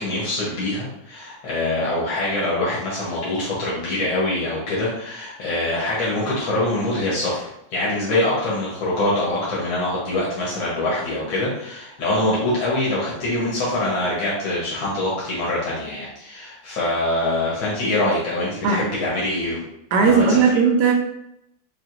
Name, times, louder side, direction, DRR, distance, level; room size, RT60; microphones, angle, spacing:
voice 1, 0.0-7.4 7.7-19.7 20.0-20.5, left 1 dB, 75° left, -6 dB, 1.8 m, -24 dB
voice 2, 19.9-20.9, right 5 dB, 65° right, 2 dB, 1.1 m, -16 dB
5.7 x 2.6 x 2.5 m, 0.79 s
omnidirectional pair, 2.2 m